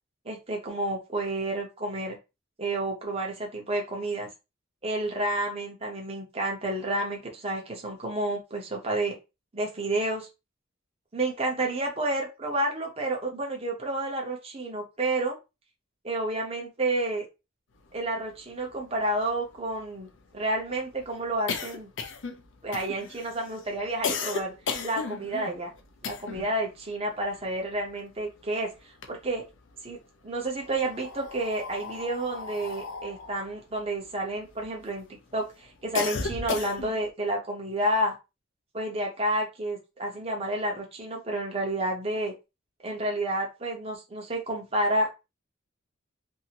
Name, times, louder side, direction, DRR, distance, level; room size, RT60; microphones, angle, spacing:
voice 1, 0.2-2.2 2.6-4.3 4.8-9.2 9.5-10.3 11.1-15.4 16.0-17.3 17.9-21.9 22.6-24.5 24.8-25.7 26.0-28.7 29.1-29.4 29.8-30.0 30.2-38.1 38.7-42.3 42.8-45.1, right 1 dB, 30° right, 0 dB, 0.8 m, -30 dB
sound 1, 18.4-18.5 18.7-18.8 19.1-26.6 26.9-28.4 28.8-29.7 30.5-34.9 35.4-37.1, left 5 dB, 65° left, 0.5 m, -35 dB
2.7 x 2.6 x 2.8 m, 0.26 s
head